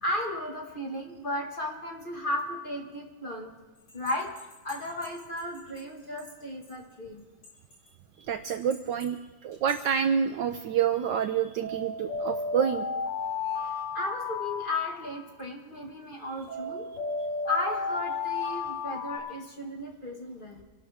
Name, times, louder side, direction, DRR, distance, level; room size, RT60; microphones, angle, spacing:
voice 1, 0.0-3.5 3.9-4.3 4.6-7.3 13.9-16.9 17.5-20.6, left 1 dB, 25° left, 0 dB, 1.7 m, -34 dB
sound 1, 3.9-5.8 6.2-6.3 6.7-6.8 7.4-7.9 8.5-9.0 9.5-9.9 11.6-15.4 16.5-19.2, left 4 dB, 60° left, 4.9 m, -34 dB
voice 2, 8.3-9.2 9.4-12.8, right 8 dB, 70° right, 8 dB, 1.1 m, -27 dB
26.0 x 12.0 x 3.5 m, 1.1 s
omnidirectional pair, 2.3 m